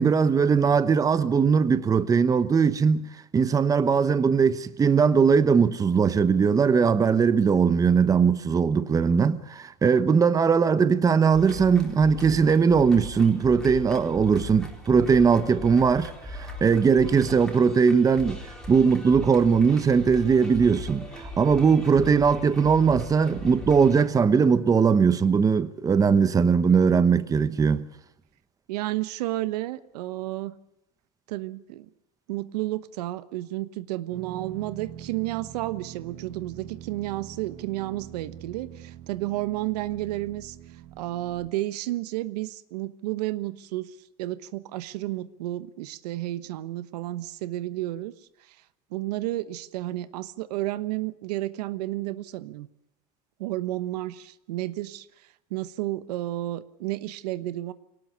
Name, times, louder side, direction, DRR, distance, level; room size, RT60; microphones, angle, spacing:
voice 1, 0.0-3.1 3.3-18.4 18.7-27.9, right 6 dB, 15° right, 1.0 m, -20 dB
sound 1, 11.3-24.1, equal, 5° left, 4.1 m, -39 dB
voice 2, 26.7-27.2 28.7-30.5 31.3-31.9 32.3-40.6 41.0-48.1 48.4-48.6 48.9-52.7 53.4-57.7, right 16 dB, 85° right, 1.2 m, -32 dB
sound 2, 34.1-41.5, right 12 dB, 60° right, 2.2 m, -44 dB
22.5 x 18.5 x 7.0 m
supercardioid pair, 135°, 20 cm